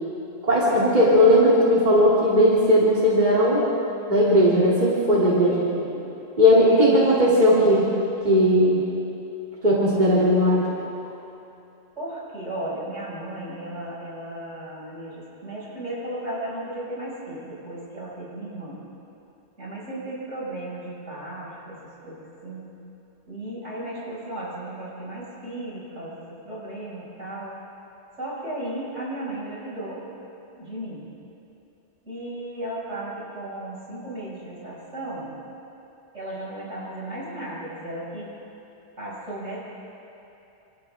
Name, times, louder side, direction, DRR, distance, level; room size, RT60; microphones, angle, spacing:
voice 1, 0.4-3.7 4.1-5.6 6.4-7.9 8.2-8.8 9.6-10.6, equal, 35° right, -7 dB, 3.2 m, -17 dB
voice 2, 5.5-6.0 6.5-7.8 12.0-18.8 19.6-21.8 22.0-22.7 23.3-26.2 26.4-27.6 28.2-30.0 30.5-31.0 32.1-35.3 36.1-38.3 39.0-39.6, right 1 dB, 75° right, -7 dB, 6.7 m, -35 dB
29.0 x 26.0 x 3.7 m, 2.9 s
omnidirectional pair, 1.3 m